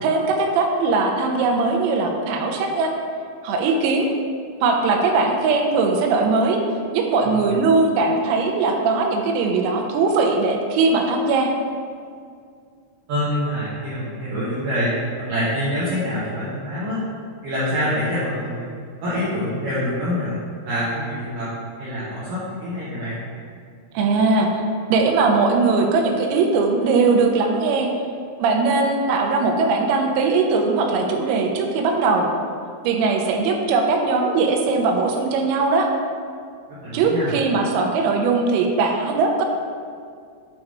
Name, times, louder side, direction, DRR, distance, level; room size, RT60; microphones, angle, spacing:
voice 1, 0.0-3.0 3.4-4.1 4.6-6.6 6.9-11.5 23.9-24.5 24.9-27.9 28.4-32.3 32.8-35.9 36.9-39.5, right 4 dB, 85° right, 2 dB, 2.9 m, -20 dB
voice 2, 13.1-17.0 17.4-18.7 19.0-21.5 21.8-23.2 36.7-37.3, equal, 65° right, -10 dB, 2.2 m, -26 dB
7.7 x 3.6 x 4.7 m, 2.2 s
omnidirectional pair, 5.1 m